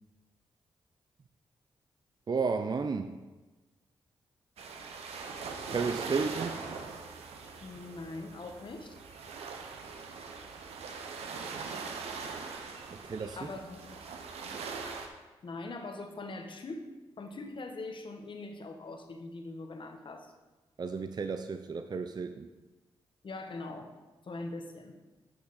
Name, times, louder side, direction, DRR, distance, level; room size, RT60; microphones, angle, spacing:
voice 1, 2.3-3.2 5.7-6.6 12.9-13.4 20.8-22.5, right 5 dB, 40° right, 9 dB, 0.5 m, -32 dB
sound 1, 4.6-15.1, right 5 dB, 80° right, 0.9 m, -41 dB
voice 2, 7.6-9.0 13.4-14.0 15.4-16.9 17.2-20.3 23.2-23.9 24.2-25.0, left 2 dB, 55° left, 5 dB, 1.2 m, -42 dB
8.6 x 5.8 x 4.1 m, 1.2 s
supercardioid pair, 45°, 10 cm